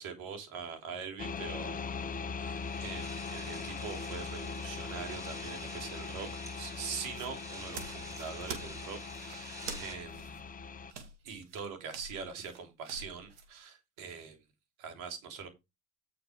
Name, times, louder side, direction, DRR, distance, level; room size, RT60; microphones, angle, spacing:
voice 1, 0.0-1.8 2.4-6.3 6.6-10.4 11.2-14.4 14.8-15.5, right 6 dB, 65° right, 3.1 m, -43 dB
sound 1, 1.2-10.9, left 5 dB, 25° left, 0.8 m, -41 dB
sound 2, 1.9-9.9, right 1 dB, 10° right, 4.1 m, -49 dB
sound 3, 7.0-13.5, right 4 dB, 90° right, 2.1 m, -47 dB
8.9 x 4.8 x 4.9 m
hypercardioid pair, 85°, 34 cm